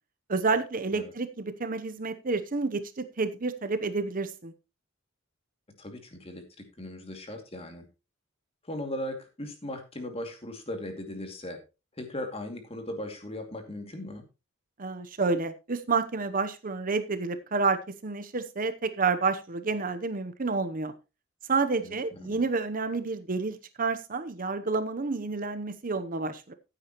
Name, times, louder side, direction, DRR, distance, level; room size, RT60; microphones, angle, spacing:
voice 1, 0.3-4.5 14.8-20.9 21.5-26.5, right 4 dB, 40° right, 11 dB, 0.8 m, -29 dB
voice 2, 5.8-7.9 8.6-11.6 11.9-14.2 21.8-22.4, left 1 dB, 30° left, 5 dB, 2.5 m, -38 dB
15.0 x 8.9 x 3.0 m, 0.29 s
head